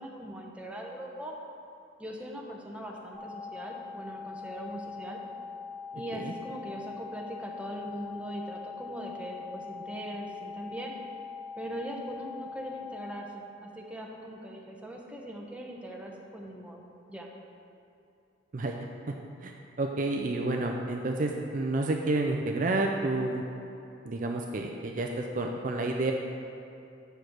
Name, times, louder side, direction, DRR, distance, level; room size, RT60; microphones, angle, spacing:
voice 1, 0.0-1.3 2.0-5.2 5.9-10.9 11.6-16.8 17.1-17.3, right 1 dB, 5° right, -1 dB, 0.8 m, -40 dB
sound 1, 3.1-13.1, left 5 dB, 20° left, 1.0 m, -42 dB
voice 2, 19.8-23.4 24.1-26.1, right 2 dB, 40° right, 2 dB, 0.4 m, -29 dB
7.9 x 4.9 x 5.8 m, 2.7 s
head